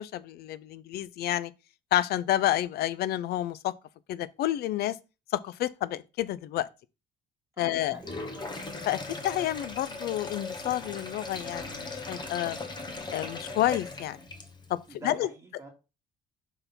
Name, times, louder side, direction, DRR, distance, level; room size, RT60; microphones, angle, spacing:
voice 1, 0.0-1.5 1.9-3.7 4.1-5.0 5.3-6.7 7.6-8.0 8.9-9.0 9.2-12.6 13.1-14.2 14.7-14.8 15.0-15.3, left 13 dB, 70° left, 0.5 m, -29 dB
voice 2, 7.6-8.6 14.9-15.7, right 2 dB, 20° right, 1.8 m, -47 dB
Sink (filling or washing), 7.9-14.8, left 3 dB, 25° left, 1.2 m, -39 dB
5.5 x 3.5 x 5.7 m
cardioid pair, 110°, 17 cm